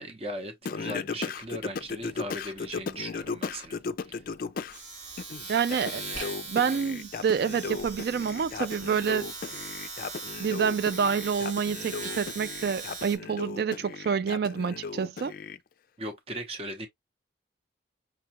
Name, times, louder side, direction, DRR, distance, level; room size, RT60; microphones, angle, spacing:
voice 1, 0.0-4.3 16.0-16.9, right 1 dB, 30° right, 0.8 m, -38 dB
Singing, 0.7-4.8 5.2-15.6, left 5 dB, 50° left, 0.3 m, -36 dB
Domestic sounds home sounds, 1.4-1.6 1.9-13.2, right 3 dB, 90° right, 1.9 m, -40 dB
voice 2, 5.5-6.0 6.5-9.3 10.4-15.3, right 6 dB, 55° right, 0.3 m, -28 dB
5.9 x 2.3 x 2.8 m
head